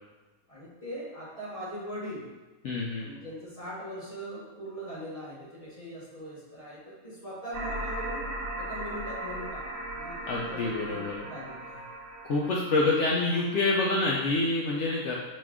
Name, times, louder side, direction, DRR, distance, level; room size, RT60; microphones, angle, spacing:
voice 1, 0.5-2.3 3.0-8.2 8.6-9.6 9.9-11.9, equal, 30° left, -7 dB, 0.9 m, -40 dB
voice 2, 2.6-3.1 10.3-11.3 12.2-15.2, left 2 dB, 65° left, -4 dB, 0.8 m, -27 dB
sound 1, 7.5-14.1, right 1 dB, 70° right, 0.9 m, -38 dB
4.9 x 2.3 x 3.5 m, 1.2 s
omnidirectional pair, 1.5 m